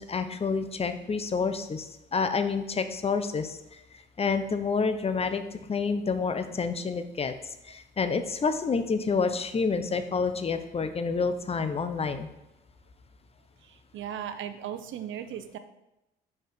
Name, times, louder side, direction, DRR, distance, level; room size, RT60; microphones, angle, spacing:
voice 1, 0.0-3.6 4.2-7.3 7.6-12.3, left 5 dB, 30° left, 10 dB, 0.7 m, -28 dB
voice 2, 13.6-15.6, right 9 dB, 75° right, 10 dB, 0.7 m, -37 dB
6.0 x 5.2 x 5.1 m, 0.91 s
cardioid pair, 90°, 20 cm